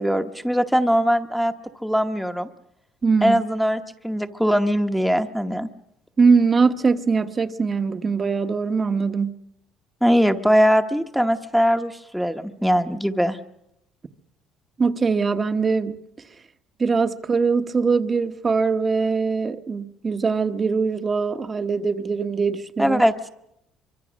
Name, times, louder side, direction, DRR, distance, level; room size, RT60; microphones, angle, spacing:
voice 1, 0.0-1.5 1.8-2.5 3.2-5.7 10.0-13.4 22.8-23.3, equal, ahead, 1.0 m, -21 dB
voice 2, 3.0-3.4 6.2-9.3 14.8-16.0 16.8-23.0, right 5 dB, 25° right, 1.0 m, -22 dB
24.0 x 24.0 x 6.3 m
cardioid pair, 120°, 0 cm